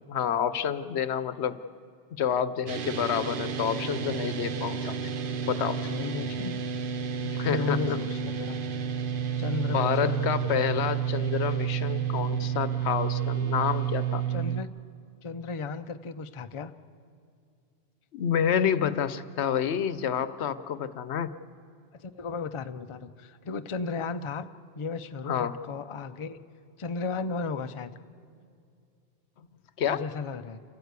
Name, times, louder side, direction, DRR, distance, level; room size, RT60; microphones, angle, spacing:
voice 1, 0.0-1.6 2.1-5.0 5.5-5.9 7.2-8.0 9.7-14.2 18.1-21.3 25.3-25.6 29.8-30.0, left 8 dB, 85° left, 13 dB, 1.0 m, -28 dB
sound 1, 2.7-14.6, right 8 dB, 55° right, 0.8 m, -30 dB
voice 2, 5.7-6.6 7.5-8.6 9.4-10.6 14.3-14.7 15.2-16.7 21.9-24.5 24.8-26.4 26.8-27.9 29.9-30.6, left 4 dB, 35° left, 10 dB, 0.5 m, -34 dB
28.5 x 14.0 x 8.2 m, 2.3 s
omnidirectional pair, 1.1 m